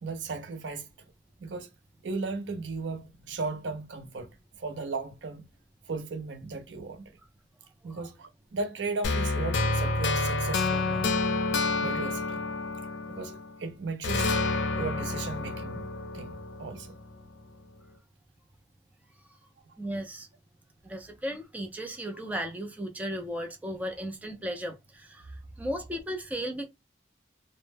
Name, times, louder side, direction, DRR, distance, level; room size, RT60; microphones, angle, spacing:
voice 1, 0.0-0.9 1.4-1.7 2.0-5.4 5.8-7.1 7.8-11.1 11.8-12.4 13.1-14.4 14.8-15.9 16.1-16.9 19.6-19.8, right 3 dB, 80° right, 0.5 m, -36 dB
sound 1, 9.0-13.6 14.0-17.1, left 3 dB, 80° left, 0.4 m, -29 dB
voice 2, 19.8-20.3 20.8-25.3 25.6-26.7, equal, 10° right, 0.4 m, -35 dB
2.0 x 2.0 x 3.2 m
head